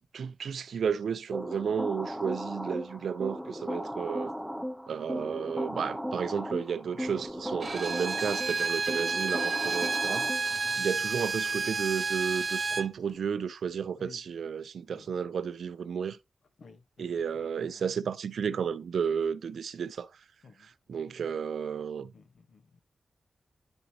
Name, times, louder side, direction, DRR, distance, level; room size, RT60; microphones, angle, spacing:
voice 1, 0.1-4.3 4.9-16.2 17.0-20.1 20.9-22.1, right 7 dB, 85° right, 0.6 m, -32 dB
sound 1, 1.3-10.8, equal, ahead, 0.7 m, -37 dB
Bowed string instrument, 7.6-12.9, right 4 dB, 40° right, 0.5 m, -30 dB
voice 2, 16.6-17.9 20.4-20.7 22.1-22.8, left 4 dB, 65° left, 1.2 m, -54 dB
9.8 x 5.3 x 2.9 m
wide cardioid pair, 145°, 0 cm